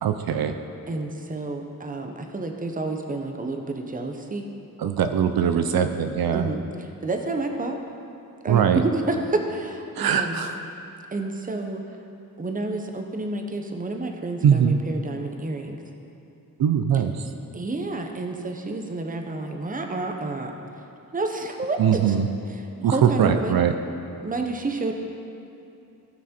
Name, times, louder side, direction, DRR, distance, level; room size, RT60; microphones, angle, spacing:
voice 1, 0.0-0.5 4.8-6.5 8.5-8.8 10.0-10.6 14.4-14.8 16.6-17.1 21.8-22.3 22.8-23.7, right 8 dB, 80° right, 7 dB, 0.7 m, -21 dB
voice 2, 0.9-4.5 6.3-7.8 8.4-10.5 11.1-11.8 12.4-15.8 17.5-20.5 21.1-22.2 22.8-23.6 24.2-24.9, right 2 dB, 25° right, 4 dB, 0.9 m, -29 dB
17.0 x 6.1 x 4.4 m, 2.7 s
wide cardioid pair, 135°, 36 cm